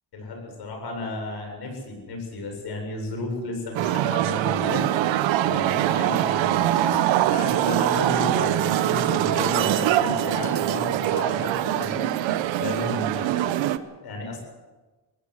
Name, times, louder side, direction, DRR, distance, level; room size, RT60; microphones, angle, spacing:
voice 1, 0.1-4.9 5.4-12.0 12.6-14.4, left 2 dB, 60° left, 3 dB, 8.0 m, -33 dB
sound 1, 3.8-13.8, right 13 dB, 90° right, 1.2 m, -23 dB
sound 2, 5.0-11.0, right 5 dB, 35° right, 1.3 m, -36 dB
21.0 x 17.5 x 8.3 m, 1.2 s
cardioid pair, 150°, 44 cm